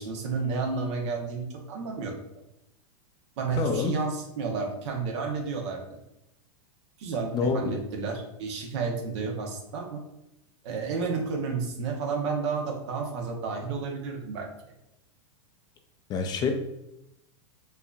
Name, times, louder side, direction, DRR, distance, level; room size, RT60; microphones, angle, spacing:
voice 1, 0.0-2.2 3.4-6.0 7.0-10.0 10.6-14.5, right 4 dB, 65° right, 2 dB, 0.9 m, -31 dB
voice 2, 3.6-3.9 7.3-7.8 16.1-16.5, left 5 dB, 25° left, 5 dB, 0.4 m, -27 dB
4.5 x 2.6 x 2.3 m, 0.86 s
hypercardioid pair, 130°, 16 cm